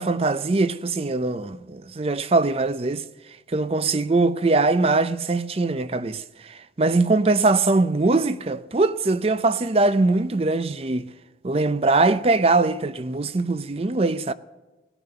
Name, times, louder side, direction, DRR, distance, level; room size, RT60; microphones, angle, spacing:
voice 1, 0.0-3.0 3.5-6.2 6.8-11.1 11.4-14.3, right 3 dB, 35° right, 0.5 m, -21 dB
18.0 x 9.9 x 6.9 m
head